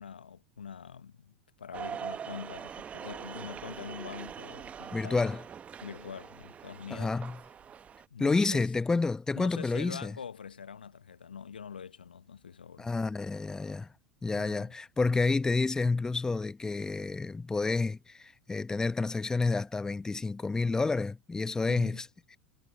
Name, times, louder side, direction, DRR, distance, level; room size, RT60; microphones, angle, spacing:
voice 1, 0.0-5.3 5.8-7.2 8.1-8.7 9.4-12.9 14.3-14.7 21.7-22.0, left 7 dB, 80° left, 0.8 m, -44 dB
sound 1, 1.7-8.1, right 7 dB, 25° right, 1.1 m, -43 dB
voice 2, 4.9-5.4 6.9-7.4 8.2-10.1 12.8-13.9 14.2-22.1, left 3 dB, 10° left, 0.9 m, -29 dB
figure-of-eight pair, 80°, 5 cm